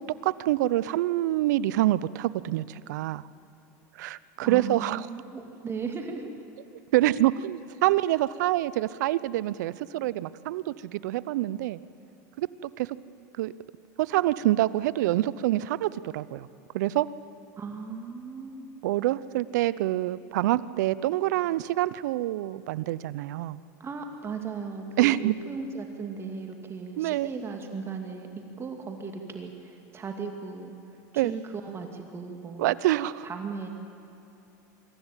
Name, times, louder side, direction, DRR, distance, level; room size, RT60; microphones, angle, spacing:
voice 1, 0.0-3.2 4.0-5.0 6.9-11.8 12.4-12.9 13.4-13.5 14.0-16.5 16.7-17.1 18.8-23.6 25.0-25.3 27.0-27.3 31.2-31.3 32.6-33.2, right 15 dB, 80° right, 18 dB, 0.6 m, -26 dB
voice 2, 4.4-6.3 17.6-18.7 23.8-30.8 31.1-32.6 33.2-33.7, right 5 dB, 25° right, 4 dB, 2.4 m, -37 dB
24.0 x 14.0 x 9.0 m, 3.0 s
supercardioid pair, 115°, 9 cm